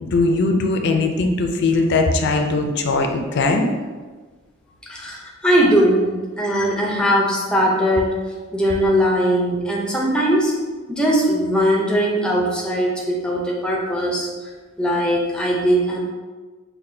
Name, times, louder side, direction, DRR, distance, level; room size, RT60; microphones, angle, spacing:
voice 1, 0.0-3.7, left 3 dB, 55° left, 4 dB, 0.4 m, -20 dB
voice 2, 4.9-8.2 8.5-10.5 10.9-14.3 14.8-16.0, equal, 5° left, -2 dB, 0.6 m, -19 dB
5.7 x 2.3 x 2.6 m, 1.3 s
head